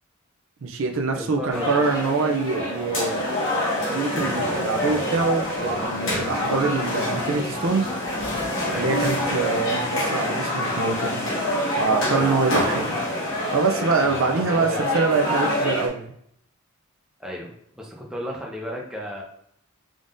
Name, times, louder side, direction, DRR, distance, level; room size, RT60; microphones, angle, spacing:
voice 1, 0.6-3.3 3.7-7.9 8.7-11.2 11.8-13.0 13.5-16.1, right 4 dB, 65° right, 3 dB, 0.5 m, -24 dB
voice 2, 1.1-1.7 8.7-8.9 12.1-12.3 14.4-14.8 17.2-19.2, equal, 5° right, -2 dB, 0.7 m, -34 dB
sound 1, 1.5-15.9, left 1 dB, 60° left, 1.5 m, -26 dB
sound 2, 4.1-9.7, right 1 dB, 45° right, 1.5 m, -41 dB
3.7 x 3.6 x 2.6 m, 0.69 s
head